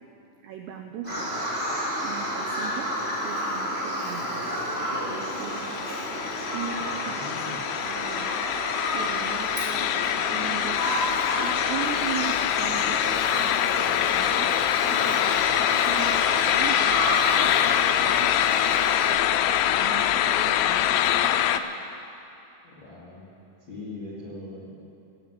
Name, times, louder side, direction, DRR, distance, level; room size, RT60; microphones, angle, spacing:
voice 1, 0.4-1.3 2.0-2.9 3.2-5.7 6.5-8.4 8.9-10.9 11.4-14.5 14.8-18.3 19.1-21.6, right 8 dB, 90° right, 4 dB, 2.5 m, -39 dB
Bird vocalization bird call bird song, 1.0-19.1, equal, 15° right, 3.0 m, -31 dB
sound 1, 5.1-21.6, left 11 dB, 90° left, 3.2 m, -24 dB
voice 2, 6.9-7.7 22.6-23.3 23.6-24.8, left 2 dB, 60° left, -8 dB, 1.3 m, -41 dB
18.0 x 8.3 x 7.3 m, 3.0 s
omnidirectional pair, 5.8 m